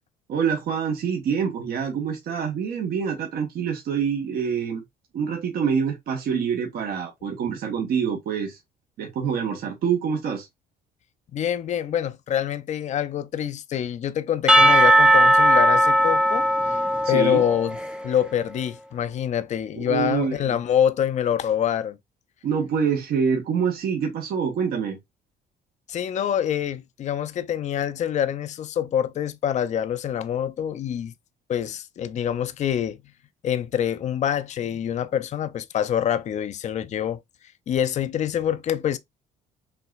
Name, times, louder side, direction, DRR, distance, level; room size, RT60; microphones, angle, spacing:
voice 1, 0.3-4.8 5.1-8.6 9.0-10.5 17.0-17.4 19.7-20.6 22.4-25.0, right 7 dB, 65° right, 1.3 m, -26 dB
voice 2, 11.3-16.8 17.1-17.8 18.0-22.0 25.9-31.1 31.5-33.0 33.4-37.2 37.7-39.0, left 9 dB, 45° left, 0.5 m, -25 dB
Percussion / Church bell, 14.5-18.1, right 1 dB, 5° right, 0.5 m, -18 dB
5.7 x 2.9 x 2.4 m
cardioid pair, 110°, 17 cm